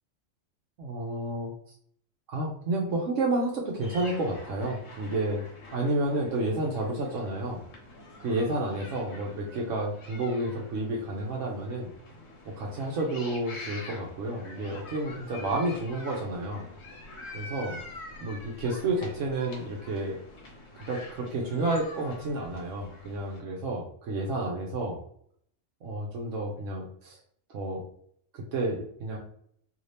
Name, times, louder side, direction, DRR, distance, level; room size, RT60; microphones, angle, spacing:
voice 1, 0.8-1.5 2.3-5.4 5.7-7.6 8.2-11.9 12.6-16.6 17.3-17.8 18.2-20.2 20.9-25.0 25.8-27.2 27.5-27.8 28.3-29.2, right 2 dB, 75° right, -2 dB, 1.0 m, -30 dB
sound 1, 3.8-23.4, left 2 dB, 60° left, 1.1 m, -46 dB
2.8 x 2.7 x 3.2 m, 0.64 s
omnidirectional pair, 1.3 m